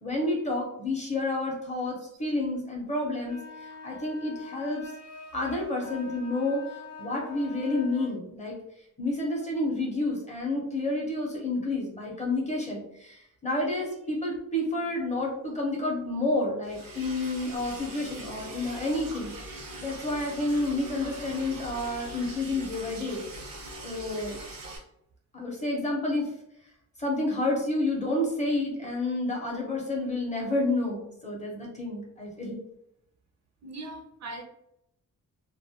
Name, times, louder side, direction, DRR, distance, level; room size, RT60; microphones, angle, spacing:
voice 1, 0.0-3.4 3.8-4.9 5.3-6.6 7.0-8.6 9.0-23.2 23.8-24.4 25.3-26.3 27.0-32.6, left 2 dB, 20° left, -2 dB, 0.6 m, -30 dB
sound 1, 3.2-8.2, left 3 dB, 80° left, 0.7 m, -44 dB
Liquid, 16.6-24.8, right 1 dB, 85° right, 0.8 m, -42 dB
voice 2, 33.6-34.4, right 2 dB, 55° right, 2 dB, 0.5 m, -40 dB
2.3 x 2.0 x 2.6 m, 0.77 s
wide cardioid pair, 160°, 33 cm